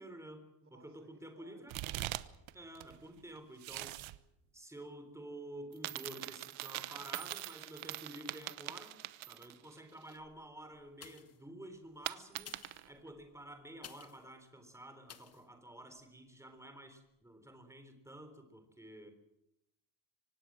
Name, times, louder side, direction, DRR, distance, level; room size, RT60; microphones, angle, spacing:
voice 1, 0.0-1.8 2.5-4.0 4.5-9.0 9.3-12.6 12.9-19.1, right 1 dB, 5° right, 8 dB, 3.6 m, -51 dB
voice 2, 0.6-2.1, right 3 dB, 25° right, 8 dB, 4.2 m, -63 dB
sound 1, 1.7-2.5 2.8-4.2 5.7-9.7 10.1-10.2 12.1-12.9, right 16 dB, 75° right, 1.1 m, -42 dB
sound 2, 11.0-11.5 12.3-14.3 15.1-15.5 16.0-16.1, left 8 dB, 30° left, 1.2 m, -54 dB
25.0 x 19.0 x 7.6 m, 0.83 s
cardioid pair, 160°, 47 cm